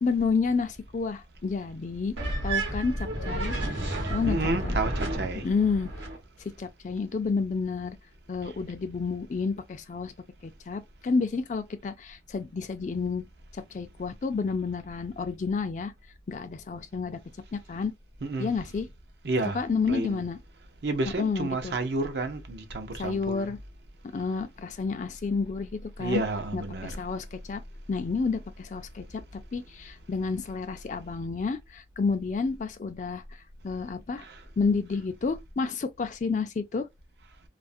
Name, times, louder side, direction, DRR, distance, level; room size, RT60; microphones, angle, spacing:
voice 1, 0.0-2.1 2.4-3.6 4.1-4.4 4.6-4.8 5.4-5.9 6.4-8.0 8.3-10.1 10.4-13.2 13.5-15.9 16.3-17.2 17.5-17.9 18.4-18.9 19.5-20.4 21.2-21.8 23.0-23.6 24.0-26.2 26.5-27.6 27.9-33.2 33.6-34.3 34.6-36.9, left 4 dB, 40° left, 0.3 m, -30 dB
sound 1, 2.2-6.2, right 1 dB, 85° right, 1.0 m, -31 dB
voice 2, 4.3-5.5 18.2-18.5 19.2-20.2 20.8-23.5 26.0-26.9 34.2-34.4, right 2 dB, 65° right, 0.6 m, -30 dB
2.4 x 2.0 x 2.5 m
head